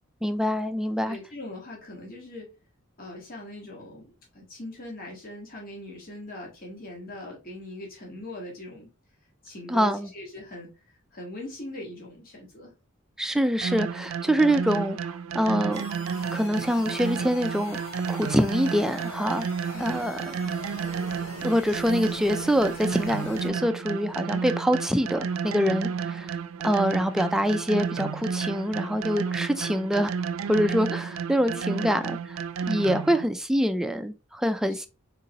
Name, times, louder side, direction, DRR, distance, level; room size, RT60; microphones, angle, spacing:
voice 1, 0.2-1.2 9.7-10.1 13.2-15.8 16.3-17.8 18.1-19.5 19.8-20.2 21.4-26.3 26.6-30.1 30.5-32.0 32.3-32.4 32.7-34.9, equal, 5° right, 0.3 m, -25 dB
voice 2, 1.0-2.5 3.0-8.9 9.4-10.7 11.1-12.7 19.7-20.1 31.5-31.9, left 1 dB, 45° left, 1.3 m, -41 dB
sound 1, 13.6-33.3, right 6 dB, 85° right, 0.4 m, -32 dB
sound 2, 15.7-23.5, left 2 dB, 85° left, 1.2 m, -42 dB
3.8 x 3.8 x 2.8 m
head